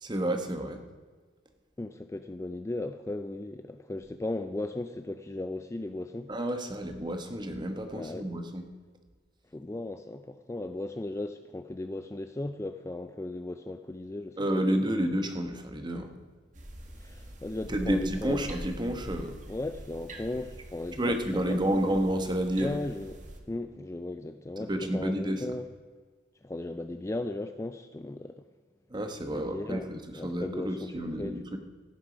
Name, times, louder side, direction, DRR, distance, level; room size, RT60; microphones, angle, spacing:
voice 1, 0.0-0.8 6.3-8.7 14.4-16.1 17.7-19.3 21.0-22.8 24.7-25.4 28.9-31.6, right 1 dB, 25° right, 6 dB, 1.1 m, -30 dB
voice 2, 1.8-6.3 7.9-8.3 9.5-14.9 17.0-18.5 19.5-21.9 22.6-23.2 23.5-25.7 26.4-28.4 29.3-29.9 30.1-31.4, left 2 dB, 15° left, 8 dB, 0.3 m, -36 dB
sound 1, 16.5-23.4, right 1 dB, 40° right, 1.4 m, -44 dB
16.5 x 7.1 x 5.0 m, 1.5 s
head